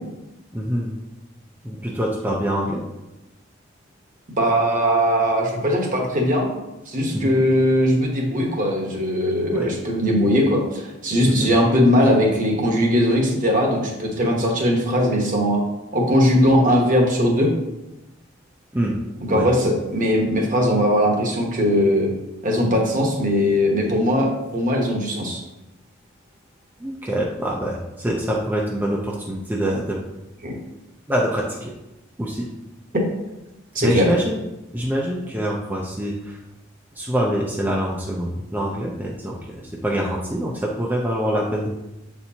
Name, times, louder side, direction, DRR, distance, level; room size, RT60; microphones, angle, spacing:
voice 1, 0.5-0.9 1.6-2.8 7.1-7.3 9.5-9.7 11.3-11.5 18.7-18.9 19.3-19.5 26.8-30.0 31.1-31.7 32.2-32.5 33.8-34.4 34.7-36.4 37.0-41.7, equal, 10° right, -3 dB, 0.5 m, -25 dB
voice 2, 4.4-6.5 6.9-15.6 15.9-17.5 19.3-22.1 22.4-25.4 30.4-30.5 32.9-33.0 33.7-34.1, equal, 40° right, 1 dB, 1.1 m, -19 dB
7.9 x 4.4 x 2.8 m, 0.98 s
head